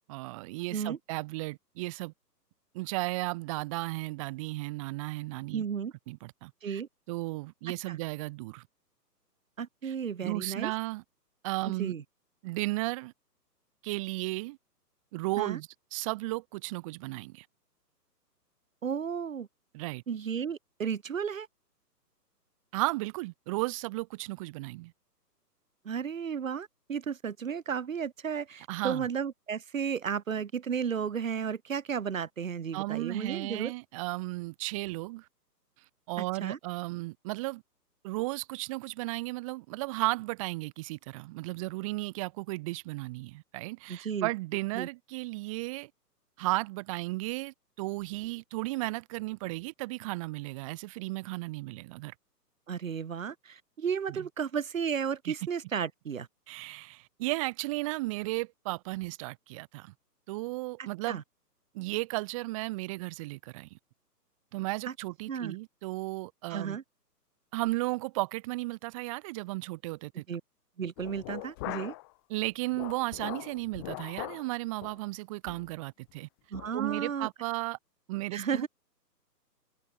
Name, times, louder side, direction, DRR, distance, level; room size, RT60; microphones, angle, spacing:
voice 1, 0.1-2.1 2.7-5.6 6.1-6.8 7.1-8.6 9.8-9.9 10.2-11.0 11.4-11.9 12.4-13.1 13.8-14.6 15.1-17.4 19.7-20.0 22.7-24.9 28.7-29.1 32.7-35.2 36.1-37.6 38.0-45.9 46.4-52.1 54.1-54.3 55.3-55.4 56.5-59.9 60.3-61.2 61.7-63.8 64.5-66.8 67.5-70.2 72.3-76.3 76.7-77.8 78.1-78.7, right 22 dB, 20° right, 1.6 m, -34 dB
voice 2, 5.5-5.9 6.6-6.9 7.9-8.0 9.6-10.7 11.7-12.0 15.4-15.6 18.8-19.5 20.1-21.5 25.9-33.7 36.2-36.6 43.9-44.3 44.7-44.9 52.7-56.3 61.1-61.2 64.9-65.0 65.3-65.6 66.5-66.8 70.3-70.4 70.8-71.9 76.5-77.3 78.3-78.7, right 7 dB, 50° right, 6.9 m, -33 dB
sound 1, 71.0-72.1 72.4-74.5 74.8-75.0 75.5-75.7 76.1-76.2 76.5-76.7, left 23 dB, 15° left, 1.0 m, -41 dB
figure-of-eight pair, 130°, 49 cm